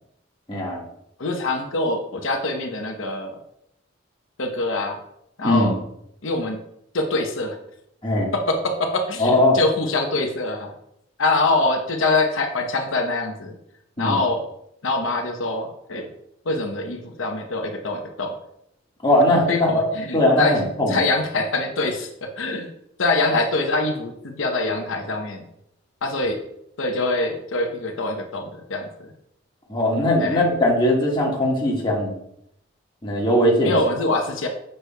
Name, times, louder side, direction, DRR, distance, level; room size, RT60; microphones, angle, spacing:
voice 1, 0.5-0.8 5.4-5.7 8.0-8.3 9.2-9.6 14.0-14.2 19.0-19.7 20.1-21.0 29.7-32.2 33.0-33.8, left 1 dB, 25° left, -3 dB, 1.5 m, -19 dB
voice 2, 1.2-3.4 4.4-5.0 5.4-5.8 6.2-6.6 6.9-7.6 8.3-10.7 11.2-13.6 14.0-14.4 14.8-16.1 16.4-18.3 19.5-20.6 20.9-22.7 23.0-25.5 26.0-26.4 26.8-29.1 30.2-30.4 33.6-34.5, left 2 dB, 90° left, 3 dB, 0.8 m, -24 dB
6.6 x 6.4 x 2.2 m, 0.76 s
head